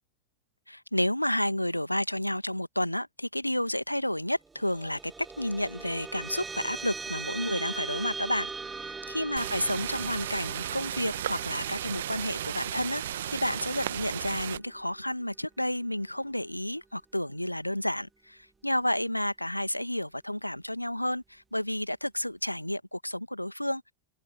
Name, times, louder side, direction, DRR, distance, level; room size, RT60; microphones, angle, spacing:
voice 1, 0.7-5.1 5.4-23.9, left 1 dB, 90° left, 1.7 m, -31 dB
sound 1, 4.5-15.2, right 4 dB, 15° right, 0.8 m, -41 dB
sound 2, 9.4-14.6, right 11 dB, 60° right, 1.2 m, -34 dB
open air
figure-of-eight pair, 90°, 0 cm